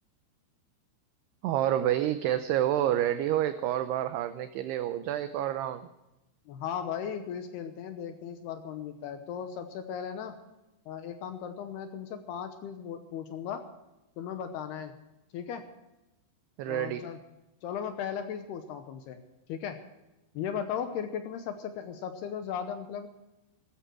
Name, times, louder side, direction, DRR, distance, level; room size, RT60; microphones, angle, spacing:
voice 1, 1.4-5.9 16.6-17.1, right 12 dB, 85° right, 10 dB, 2.3 m, -28 dB
voice 2, 6.5-10.3 10.9-13.6 14.2-14.9 15.3-15.6 16.7-17.2 17.6-19.2 19.5-19.8 20.3-23.1, left 8 dB, 75° left, 7 dB, 2.6 m, -36 dB
16.0 x 14.0 x 4.6 m, 0.97 s
omnidirectional pair, 5.5 m